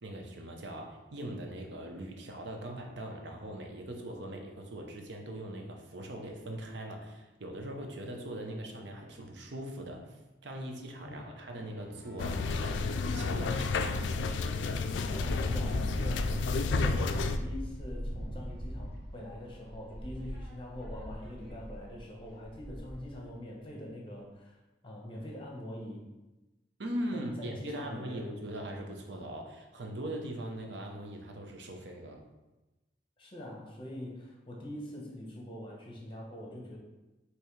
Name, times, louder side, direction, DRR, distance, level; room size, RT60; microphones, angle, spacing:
voice 1, 0.0-12.9 13.1-14.1 26.8-32.3, right 1 dB, 70° right, 2 dB, 0.7 m, -41 dB
sound 1, 11.1-16.1, right 1 dB, 90° right, 1.1 m, -57 dB
sound 2, 12.2-17.4, left 4 dB, 80° left, 0.3 m, -31 dB
voice 2, 15.0-26.0 27.1-28.3 33.2-36.8, left 1 dB, 25° left, -2 dB, 0.9 m, -44 dB
Wind, 15.1-23.2, equal, 35° right, 1.1 m, -38 dB
5.6 x 3.0 x 3.2 m, 1.1 s
head